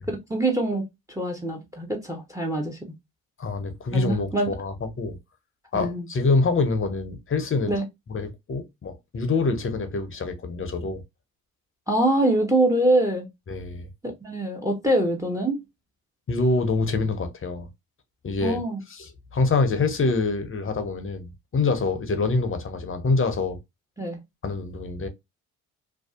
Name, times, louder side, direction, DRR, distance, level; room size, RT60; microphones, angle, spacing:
voice 1, 0.3-0.9 1.2-2.8 3.9-4.5 5.7-6.1 7.7-7.8 11.9-13.3 14.2-15.6 18.4-18.8 24.0-24.2, right 1 dB, 10° right, 0.7 m, -24 dB
voice 2, 3.4-5.2 5.7-7.7 8.1-11.0 13.5-13.9 16.3-17.7 18.2-18.6 18.9-21.3 21.5-23.6 24.4-25.1, left 3 dB, 30° left, 0.7 m, -25 dB
2.6 x 2.2 x 2.3 m
hypercardioid pair, 55°, 42 cm